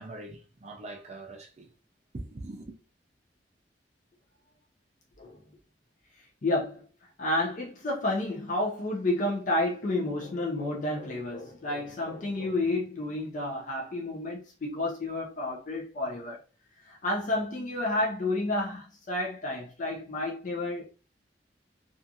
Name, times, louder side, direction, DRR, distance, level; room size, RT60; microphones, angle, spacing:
voice 1, 0.0-1.7 2.1-2.8, right 2 dB, 40° right, 0.5 m, -42 dB
voice 2, 6.4-6.9 7.2-16.4 16.9-20.8, left 2 dB, 50° left, 0.5 m, -30 dB
2.4 x 2.4 x 2.7 m
head